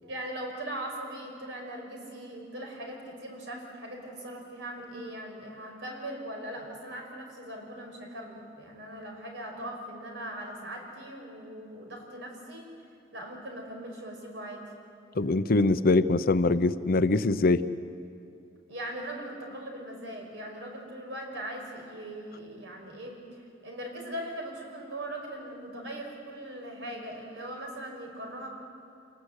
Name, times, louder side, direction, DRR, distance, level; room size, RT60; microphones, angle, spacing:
voice 1, 0.0-12.7 13.1-14.7 18.7-28.5, right 1 dB, 70° right, 1 dB, 5.4 m, -40 dB
voice 2, 15.2-17.6, left 2 dB, 55° left, 13 dB, 0.7 m, -23 dB
27.5 x 19.5 x 8.2 m, 2.5 s
head